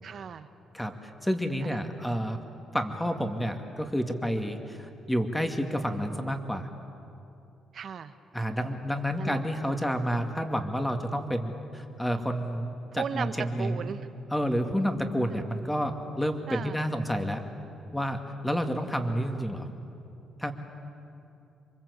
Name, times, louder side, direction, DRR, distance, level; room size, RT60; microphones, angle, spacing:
voice 1, 0.0-0.5 1.6-1.8 7.7-8.1 9.2-9.4 12.9-13.3 13.6-14.1 15.3-15.4 16.5-16.8, right 7 dB, 55° right, 10 dB, 1.2 m, -36 dB
voice 2, 0.7-2.4 2.7-6.7 8.3-14.0 14.3-17.4 17.9-19.7 20.4-20.5, equal, 5° left, 5 dB, 2.3 m, -30 dB
27.0 x 23.5 x 8.4 m, 2.8 s
cardioid pair, 90°, 0 cm